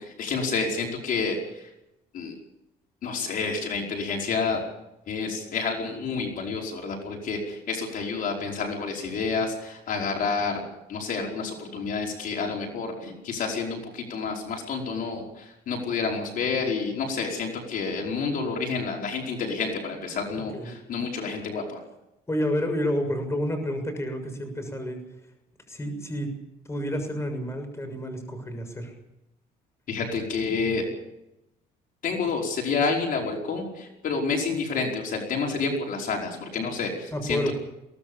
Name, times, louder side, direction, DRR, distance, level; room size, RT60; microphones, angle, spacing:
voice 1, 0.0-1.7 2.1-2.3 3.0-4.6 5.1-10.6 10.9-21.8 29.9-30.8 32.0-37.5, left 4 dB, 55° left, 0 dB, 5.1 m, -29 dB
voice 2, 22.3-25.0 25.7-26.3 26.7-28.9 37.1-37.5, equal, 15° left, 6 dB, 6.7 m, -29 dB
23.0 x 18.0 x 7.2 m, 0.90 s
cardioid pair, 110°, 17 cm